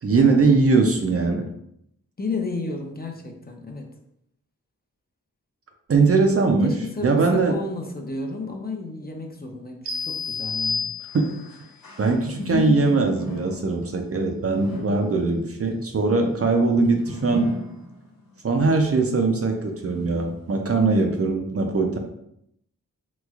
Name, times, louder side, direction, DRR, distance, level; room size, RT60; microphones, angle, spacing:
voice 1, 0.0-1.5 5.9-6.8 7.0-7.6 11.1-11.3 12.0-17.5 18.4-22.0, right 3 dB, 45° right, 3 dB, 0.5 m, -21 dB
voice 2, 2.2-3.9 6.6-10.9 12.4-13.0 16.8-17.0, left 3 dB, 30° left, 2 dB, 0.6 m, -32 dB
sound 1, 9.9-11.6, left 4 dB, 90° right, 0.5 m, -29 dB
sound 2, 11.1-12.7 13.1-18.4 18.9-19.0 19.8-19.9, left 2 dB, 80° left, 0.7 m, -39 dB
3.0 x 3.0 x 2.4 m, 0.75 s
cardioid pair, 45°, 34 cm